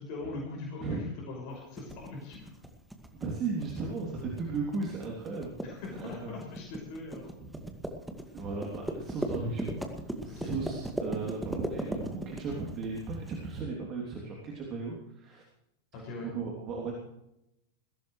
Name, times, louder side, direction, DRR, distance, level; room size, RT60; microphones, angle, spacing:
voice 1, 0.0-2.5 5.6-7.3 10.3-10.5 15.9-16.3, left 3 dB, 45° left, -1 dB, 6.1 m, -41 dB
sound 1, 1.8-13.4, right 1 dB, 5° right, 2.1 m, -38 dB
voice 2, 3.1-5.6 6.0-6.3 7.4-7.7 8.3-9.8 10.2-15.4 16.2-16.9, right 4 dB, 30° right, -2 dB, 3.2 m, -36 dB
21.5 x 17.0 x 3.3 m, 0.86 s
figure-of-eight pair, 90°, 0 cm